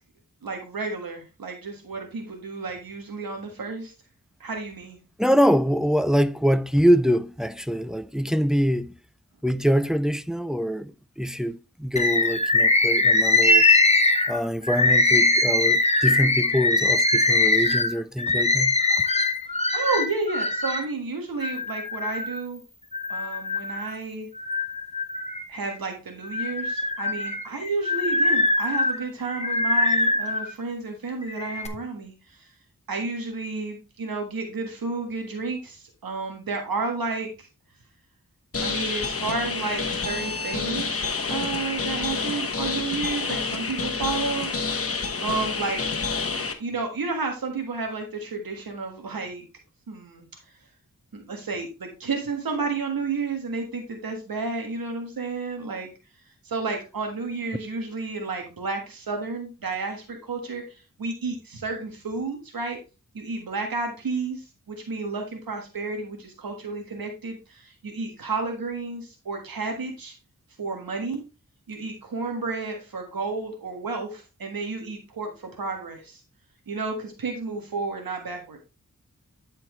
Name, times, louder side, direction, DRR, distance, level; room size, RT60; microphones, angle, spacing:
voice 1, 0.4-3.9 4.4-5.0 19.7-22.6 23.1-24.3 25.5-32.5 32.9-37.5 38.6-44.5 45.2-45.8 46.6-49.4 49.9-50.3 51.1-55.9 56.4-62.8 63.1-70.1 70.6-71.2 71.7-76.2 76.7-78.6, right 3 dB, 90° right, 1.5 m, -31 dB
voice 2, 5.2-9.0 9.4-13.6 14.3-18.8, equal, ahead, 0.3 m, -24 dB
Bird, 12.0-20.9 21.4-22.4 22.9-23.9 24.4-25.7 26.2-30.5 31.2-31.7, left 2 dB, 20° left, 0.9 m, -22 dB
sound 1, 38.5-46.5, left 4 dB, 40° left, 1.1 m, -28 dB
11.5 x 4.4 x 3.1 m
wide cardioid pair, 100°, 34 cm